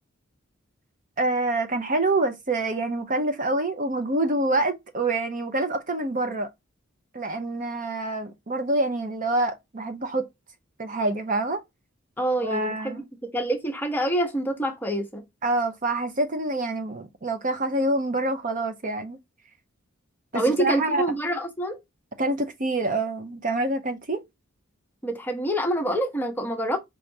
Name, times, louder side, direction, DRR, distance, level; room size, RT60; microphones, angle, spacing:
voice 1, 1.2-6.5 7.1-10.3 10.8-11.6 12.4-13.0 15.4-19.2 20.3-21.0 22.2-24.2, right 2 dB, 40° right, 0.6 m, -26 dB
voice 2, 12.2-13.0 13.3-15.2 20.3-21.8 25.0-26.8, right 1 dB, 10° left, 0.8 m, -26 dB
4.7 x 3.3 x 2.7 m
head